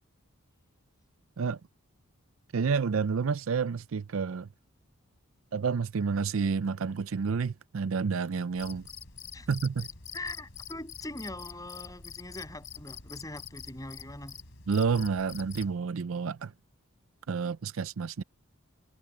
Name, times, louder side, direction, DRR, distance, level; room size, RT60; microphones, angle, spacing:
voice 1, 2.5-4.5 5.5-8.9 9.5-9.9 14.7-16.5 17.3-18.2, right 5 dB, 70° right, 0.5 m, -29 dB
Cricket, 8.6-15.8, left 7 dB, 65° left, 3.7 m, -46 dB
voice 2, 10.1-14.4, left 2 dB, 15° left, 7.3 m, -42 dB
head